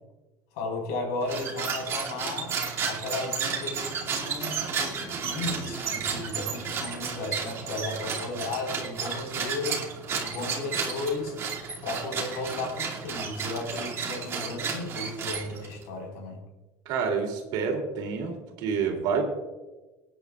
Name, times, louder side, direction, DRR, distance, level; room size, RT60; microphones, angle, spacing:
voice 1, 0.5-2.5 2.9-9.8 10.1-11.3 11.8-16.4, left 2 dB, 90° left, 1 dB, 4.6 m, -34 dB
sound 1, 1.2-15.8, right 6 dB, 35° right, 2.5 m, -32 dB
voice 2, 16.8-19.2, right 6 dB, 65° right, 2 dB, 3.0 m, -28 dB
26.0 x 9.9 x 2.4 m, 1.1 s
cardioid pair, 145°, 8 cm